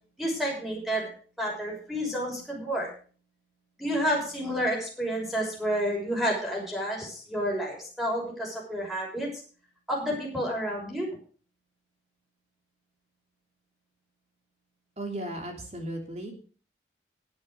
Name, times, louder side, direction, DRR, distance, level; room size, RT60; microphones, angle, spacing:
voice 1, 0.2-1.1 1.4-2.9 3.8-9.3 9.9-11.1, equal, ahead, -3 dB, 6.1 m, -30 dB
voice 2, 15.0-16.3, right 1 dB, 40° right, 3 dB, 3.2 m, -35 dB
12.0 x 8.7 x 6.6 m, 0.40 s
head